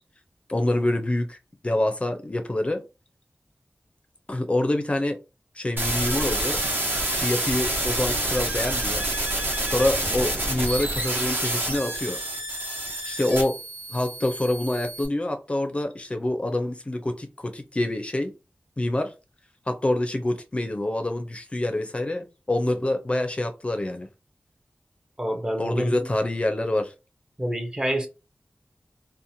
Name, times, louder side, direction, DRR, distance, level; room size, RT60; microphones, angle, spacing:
voice 1, 0.5-1.4 1.6-2.8 4.3-5.2 5.6-6.6 7.1-9.0 9.7-12.2 13.0-13.5 13.9-18.3 18.8-19.1 19.8-24.1 25.6-26.9, left 1 dB, 30° left, 0.4 m, -26 dB
sound 1, 5.8-15.1, right 1 dB, 60° right, 0.9 m, -28 dB
voice 2, 25.2-26.1 27.4-28.1, equal, 20° right, 0.5 m, -27 dB
2.8 x 2.1 x 2.6 m
wide cardioid pair, 80°, 4 cm